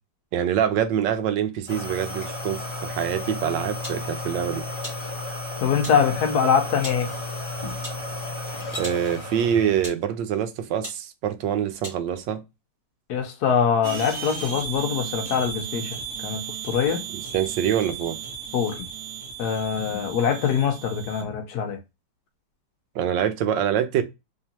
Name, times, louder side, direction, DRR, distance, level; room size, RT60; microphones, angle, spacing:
voice 1, 0.3-4.6 8.7-12.4 17.1-18.2 22.9-24.0, right 9 dB, 80° right, 1.3 m, -25 dB
sound 1, 1.7-9.9, left 2 dB, 40° left, 0.4 m, -33 dB
sound 2, 3.8-4.0 4.8-5.0 5.8-6.0 6.8-7.0 7.8-8.0 8.8-9.0 9.8-10.1 10.8-11.0 11.8-12.0, equal, 10° right, 2.1 m, -37 dB
voice 2, 5.6-7.1 13.1-16.0 16.2-17.1 18.5-18.8 19.4-21.8, left 7 dB, 65° left, 1.1 m, -23 dB
sound 3, 13.8-21.2, right 7 dB, 50° right, 1.1 m, -35 dB
3.7 x 3.2 x 2.8 m
omnidirectional pair, 2.0 m